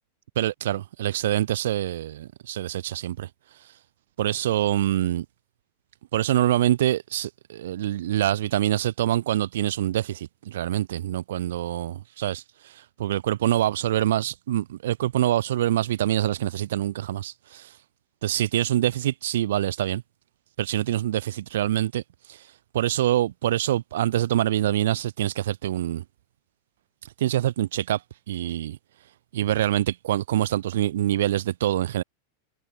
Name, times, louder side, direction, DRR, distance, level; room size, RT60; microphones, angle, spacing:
voice 1, 0.4-3.3 4.2-5.2 6.1-17.7 18.2-20.0 20.6-22.0 22.3-22.4 22.7-26.0 27.2-28.0 28.3-28.8 29.3-32.0, right 13 dB, 60° right, 1.1 m, -25 dB
figure-of-eight pair, 90°, 0 cm